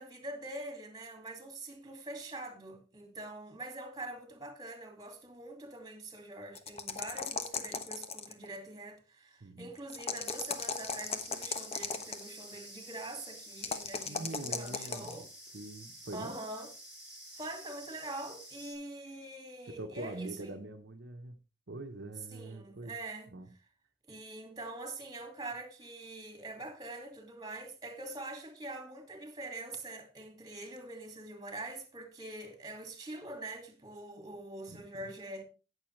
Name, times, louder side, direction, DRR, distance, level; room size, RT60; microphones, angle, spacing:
voice 1, 0.0-15.3 16.1-16.7 17.3-20.6 22.3-23.3 24.1-35.4, right 2 dB, 20° right, 2.4 m, -44 dB
sound 1, 6.6-8.5 9.9-12.2 13.6-15.2, left 5 dB, 35° left, 1.2 m, -36 dB
sound 2, 10.2-18.7, right 1 dB, 5° right, 6.0 m, -50 dB
voice 2, 14.1-15.2 15.5-16.4 19.8-21.4 21.7-23.0 23.3-23.5 34.7-35.1, right 2 dB, 75° right, 1.0 m, -43 dB
17.5 x 6.8 x 3.2 m
head